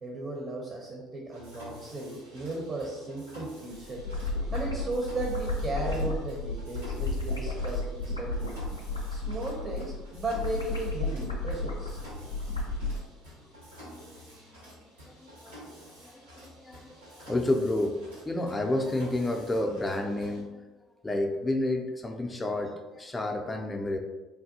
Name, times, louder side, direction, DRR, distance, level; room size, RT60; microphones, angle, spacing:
voice 1, 0.0-4.0 4.5-8.6 9.1-12.3, right 2 dB, 40° right, -1 dB, 0.6 m, -35 dB
Mechanisms, 1.3-20.4, equal, 80° right, 0.8 m, -50 dB
sound 1, 3.7-12.9, left 3 dB, 90° left, 0.4 m, -33 dB
voice 2, 15.0-15.6 16.0-18.0 18.3-20.7 21.0-24.0, left 1 dB, 15° left, 2 dB, 0.3 m, -30 dB
3.3 x 2.2 x 2.6 m, 1.2 s
figure-of-eight pair, 60°, 0 cm